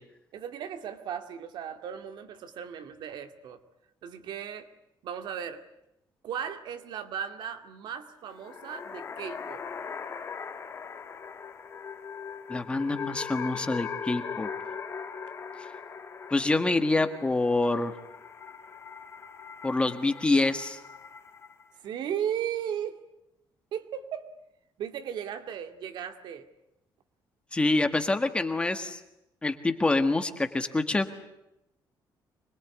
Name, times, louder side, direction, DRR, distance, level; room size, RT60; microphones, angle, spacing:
voice 1, 0.3-3.6 4.0-4.7 5.0-5.6 6.2-9.6 21.8-23.0 23.7-24.3 24.8-26.5, right 9 dB, 70° right, 8 dB, 2.3 m, -36 dB
sound 1, 8.3-21.7, left 6 dB, 30° left, 1.8 m, -40 dB
voice 2, 12.5-14.5 16.3-17.9 19.6-20.8 27.5-29.0 29.4-31.1, left 2 dB, 15° left, 8 dB, 1.6 m, -26 dB
25.5 x 21.5 x 9.6 m, 0.87 s
cardioid pair, 175°, 8 cm